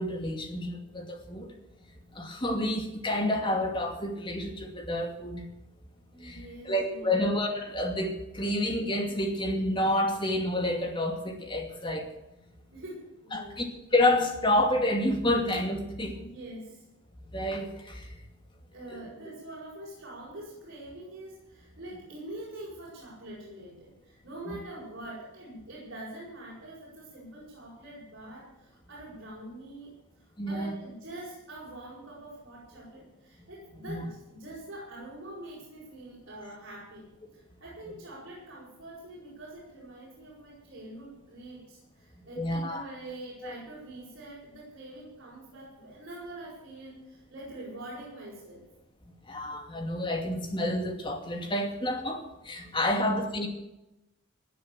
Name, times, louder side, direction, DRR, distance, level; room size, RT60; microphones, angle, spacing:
voice 1, 0.0-1.5 2.1-5.5 6.2-12.1 13.3-16.2 17.3-18.1 18.9-19.0 24.5-24.6 30.4-30.7 33.9-34.0 42.4-42.9 43.4-43.5 49.3-53.5, left 1 dB, 20° left, 4 dB, 2.5 m, -29 dB
voice 2, 6.1-7.2 12.7-13.6 15.9-16.8 18.7-48.6 52.6-52.8 53.0-53.3, right 1 dB, 50° right, -8 dB, 7.5 m, -45 dB
18.5 x 10.0 x 7.6 m, 0.94 s
head